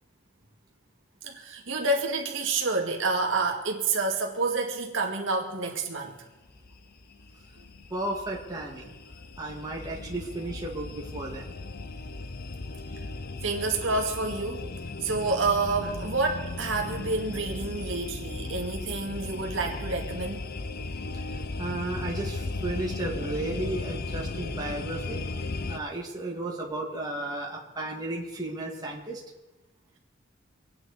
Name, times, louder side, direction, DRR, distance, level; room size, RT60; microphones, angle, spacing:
voice 1, 1.2-6.1 13.4-14.7 15.0-20.4, right 3 dB, 70° right, 0 dB, 2.1 m, -28 dB
sound 1, 6.5-25.8, left 3 dB, 50° left, 0.7 m, -36 dB
voice 2, 7.9-8.9 9.4-11.5 21.6-25.2 25.7-29.2, right 2 dB, 20° right, -2 dB, 2.2 m, -34 dB
25.5 x 9.6 x 4.2 m, 1.1 s
head